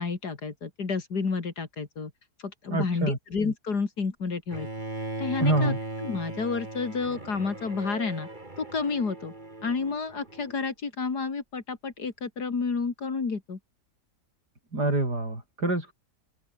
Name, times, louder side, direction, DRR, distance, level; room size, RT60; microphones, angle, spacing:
voice 1, 0.0-2.1 2.4-4.7 5.2-5.7 6.0-8.3 8.6-9.3 9.6-13.6, left 4 dB, 75° left, 3.3 m, -30 dB
voice 2, 2.7-3.2 5.4-5.8 14.7-15.9, right 2 dB, 80° right, 8.0 m, -26 dB
Bowed string instrument, 4.5-10.6, right 2 dB, 30° right, 3.9 m, -38 dB
open air
omnidirectional pair, 1.7 m